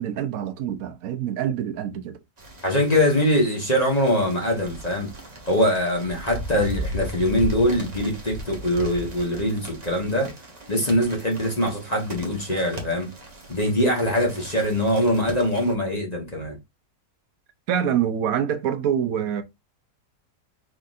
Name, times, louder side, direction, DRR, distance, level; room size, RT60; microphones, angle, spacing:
voice 1, 0.0-2.2 17.7-19.4, right 9 dB, 70° right, 0.9 m, -25 dB
sound 1, 2.4-15.7, equal, 30° right, 0.9 m, -37 dB
voice 2, 2.6-5.1 5.5-10.3 10.7-13.1 13.5-16.6, equal, 30° left, 1.1 m, -23 dB
4.5 x 3.6 x 2.5 m
omnidirectional pair, 1.8 m